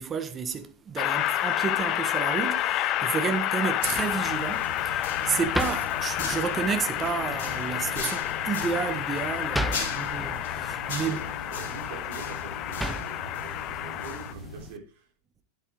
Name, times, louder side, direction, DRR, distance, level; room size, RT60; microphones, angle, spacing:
voice 1, 0.0-11.2, right 6 dB, 20° right, 1.4 m, -31 dB
Train, 1.0-14.3, left 13 dB, 35° left, 0.5 m, -30 dB
sound 1, 3.6-14.8, equal, ahead, 0.7 m, -38 dB
sound 2, 3.8-14.7, left 3 dB, 55° left, 2.9 m, -39 dB
voice 2, 9.7-10.1 11.1-15.1, right 5 dB, 50° right, 3.6 m, -45 dB
9.9 x 8.8 x 3.7 m
figure-of-eight pair, 90°, 0 cm